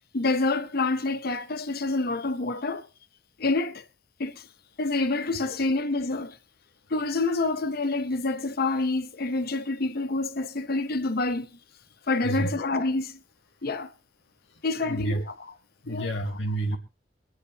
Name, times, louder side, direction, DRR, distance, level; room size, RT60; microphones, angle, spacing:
voice 1, 0.1-2.9 3.4-3.8 4.2-4.5 4.8-6.4 6.9-11.5 12.1-13.1 13.6-13.9 14.6-15.3 15.9-16.1, left 3 dB, 50° left, 0.8 m, -27 dB
voice 2, 12.2-12.7 14.5-15.2 15.8-16.8, right 1 dB, 70° left, 1.6 m, -30 dB
25.0 x 9.9 x 2.9 m
head